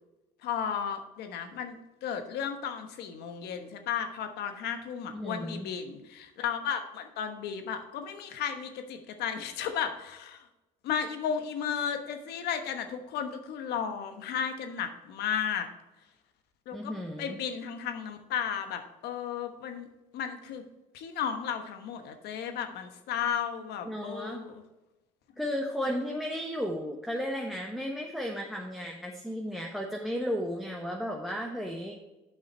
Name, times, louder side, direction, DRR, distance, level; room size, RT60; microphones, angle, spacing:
voice 1, 0.4-10.4 10.8-15.7 16.7-16.9 17.2-19.9 20.1-20.6 20.9-24.6, left 8 dB, 70° left, 7 dB, 1.2 m, -34 dB
voice 2, 5.1-5.7 16.7-17.4 23.8-24.4 25.4-32.0, equal, ahead, 0 dB, 1.2 m, -34 dB
8.8 x 5.6 x 4.4 m, 1.0 s
supercardioid pair, 80°, 17 cm